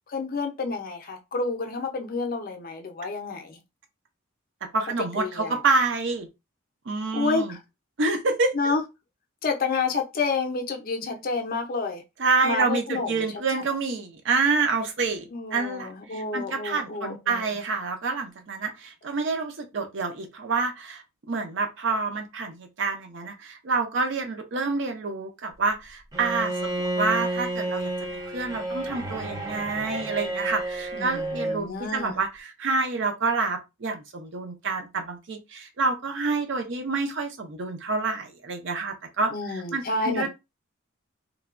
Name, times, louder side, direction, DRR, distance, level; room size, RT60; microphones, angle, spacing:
voice 1, 0.1-3.6 5.2-5.6 7.1-7.6 8.5-8.8 9.4-12.0 12.4-13.3 13.6-13.7 15.3-17.5 30.9-32.2 39.3-40.3, left 4 dB, 45° left, 0.5 m, -29 dB
voice 2, 4.7-6.3 6.9-7.6 8.0-8.7 12.2-40.3, right 4 dB, 60° right, 0.5 m, -28 dB
Bowed string instrument, 26.1-31.6, right 1 dB, 20° right, 0.6 m, -31 dB
3.1 x 2.2 x 2.4 m
head